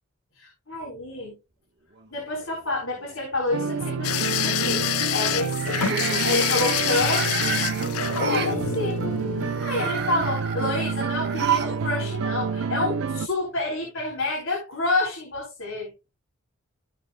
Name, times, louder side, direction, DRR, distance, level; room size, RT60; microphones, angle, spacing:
voice 1, 0.3-1.4 2.1-4.8 5.1-7.3 8.1-15.9, left 2 dB, 65° left, -2 dB, 3.8 m, -29 dB
sound 1, 2.0-2.6 3.0-3.4 5.5-8.6 9.4-11.8 12.1-12.2 13.3-13.4, right 7 dB, 50° right, 1.4 m, -31 dB
sound 2, 3.5-13.3, right 5 dB, 75° right, 0.5 m, -29 dB
sound 3, 4.0-10.0 11.3-11.6 11.9-12.0, left 10 dB, 90° left, 0.5 m, -27 dB
15.5 x 5.4 x 2.3 m, 0.26 s
head